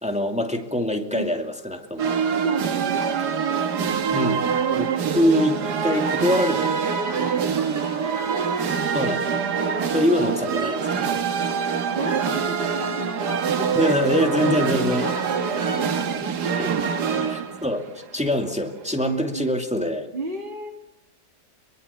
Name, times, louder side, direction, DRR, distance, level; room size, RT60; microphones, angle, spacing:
voice 1, 0.0-2.1 3.1-3.5 4.1-4.5 4.7-7.3 8.9-9.3 9.9-11.2 13.8-15.1 16.6-16.8 17.2-17.9 18.1-20.1, equal, 5° right, 4 dB, 2.2 m, -24 dB
sound 1, 2.0-18.5, right 6 dB, 80° right, 1.8 m, -25 dB
voice 2, 2.1-3.1 7.1-8.0 11.5-16.6 17.2-17.3 19.0-19.6 20.1-20.7, right 2 dB, 30° right, -1 dB, 2.7 m, -33 dB
25.0 x 23.0 x 7.0 m, 0.85 s
omnidirectional pair, 1.8 m